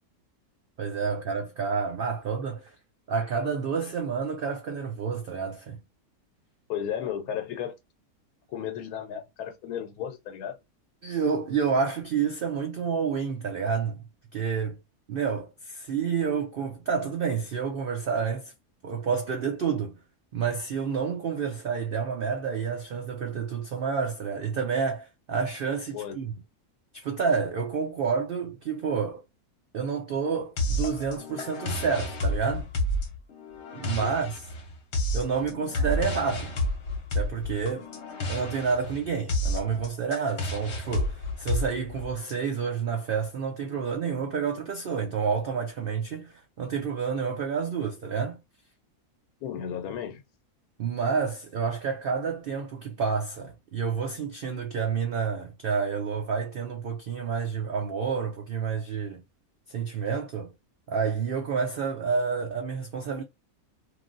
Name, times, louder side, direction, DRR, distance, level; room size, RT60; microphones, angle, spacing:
voice 1, 0.8-2.8 3.1-5.8 11.0-14.0 14.3-14.8 15.1-18.5 18.8-20.0 20.3-26.3 26.9-29.2 29.7-32.7 33.7-34.4 35.1-36.5 37.1-37.8 38.3-48.4 50.8-59.2 59.7-60.5 60.9-63.2, right 6 dB, 75° right, 0.5 m, -29 dB
voice 2, 6.7-7.8 8.5-10.6 25.9-26.4 34.0-34.2 49.4-50.2, left 9 dB, 80° left, 1.1 m, -34 dB
sound 1, 30.6-42.3, left 1 dB, 55° left, 1.0 m, -30 dB
3.0 x 2.5 x 2.5 m
omnidirectional pair, 1.6 m